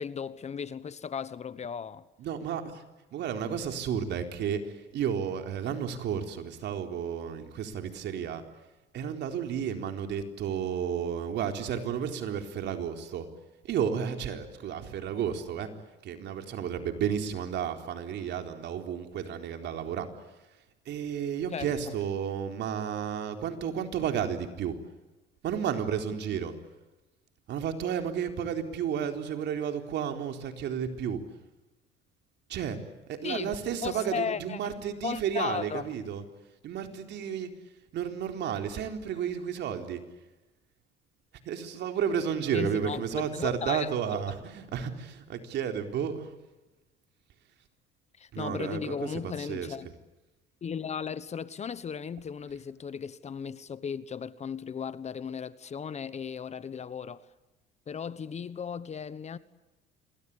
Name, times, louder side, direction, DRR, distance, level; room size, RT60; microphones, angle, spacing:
voice 1, 0.0-2.0 21.5-21.7 33.2-33.6 33.8-34.6 35.0-35.8 42.5-43.9 48.2-49.9 50.6-57.3 57.9-59.4, left 7 dB, 35° left, 1.2 m, -36 dB
voice 2, 2.2-2.8 3.1-8.4 8.9-13.3 13.6-15.7 16.0-20.1 20.9-24.7 25.4-26.6 27.5-31.2 32.5-32.8 33.1-36.2 36.6-37.5 37.9-40.0 41.4-46.3 48.3-49.8, right 8 dB, 60° right, 4.0 m, -32 dB
27.5 x 23.0 x 8.5 m
cardioid pair, 110°, 20 cm